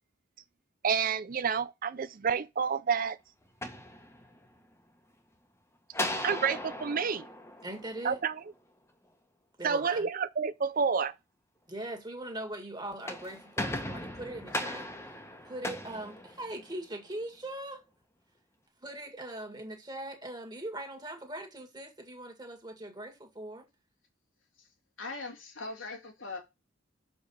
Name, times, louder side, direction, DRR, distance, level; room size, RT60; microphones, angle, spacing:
voice 1, 0.8-3.2 6.2-7.3 8.0-8.3 9.6-11.1, right 6 dB, 45° right, 0.5 m, -29 dB
sound 1, 3.4-4.6 5.9-8.4 12.8-16.9, left 1 dB, 15° left, 1.2 m, -38 dB
voice 2, 7.6-8.2 9.6-10.1 11.7-14.9 15.4-17.8 18.8-23.7, right 1 dB, 20° right, 2.0 m, -41 dB
voice 3, 25.0-26.4, left 3 dB, 85° left, 2.6 m, -40 dB
6.6 x 5.4 x 4.2 m
head